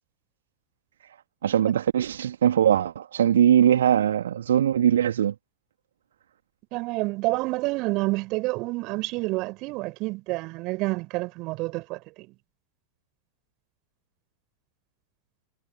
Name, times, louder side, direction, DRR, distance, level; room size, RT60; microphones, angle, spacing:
voice 1, 1.4-5.3, right 10 dB, 65° right, 2.5 m, -21 dB
voice 2, 6.7-12.3, right 23 dB, 40° right, 6.8 m, -28 dB
figure-of-eight pair, 90°, 0 cm